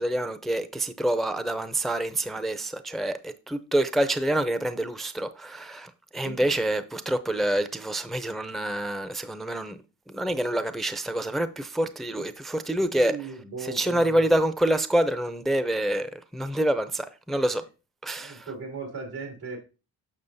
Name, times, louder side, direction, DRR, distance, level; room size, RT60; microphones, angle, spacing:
voice 1, 0.0-9.8 10.1-13.2 13.6-17.6 18.0-18.5, right 1 dB, ahead, 0.5 m, -27 dB
voice 2, 12.9-14.3 18.2-19.6, right 4 dB, 85° right, 2.8 m, -38 dB
7.2 x 6.2 x 2.6 m
cardioid pair, 60°, 37 cm